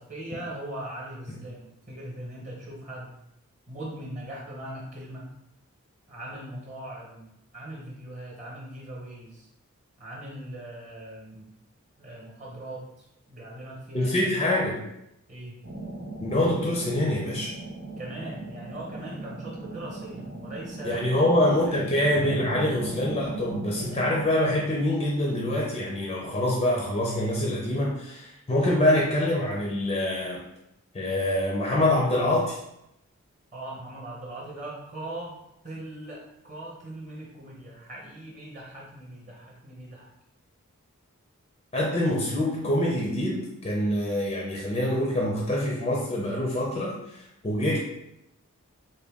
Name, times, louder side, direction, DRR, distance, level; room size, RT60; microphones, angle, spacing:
voice 1, 0.0-3.1 3.7-5.3 6.1-9.5 10.0-11.6 12.0-14.1 15.3-15.6 18.0-21.4 21.7-21.9 33.5-35.4 35.6-40.1, right 1 dB, 30° right, -4 dB, 0.8 m, -40 dB
voice 2, 13.9-14.9 16.2-17.5 20.8-30.4 30.9-32.6 41.7-47.8, left 1 dB, 25° left, -2 dB, 0.4 m, -25 dB
sound 1, 15.6-24.3, right 2 dB, 65° right, 0.7 m, -38 dB
3.8 x 2.2 x 3.4 m, 0.83 s
head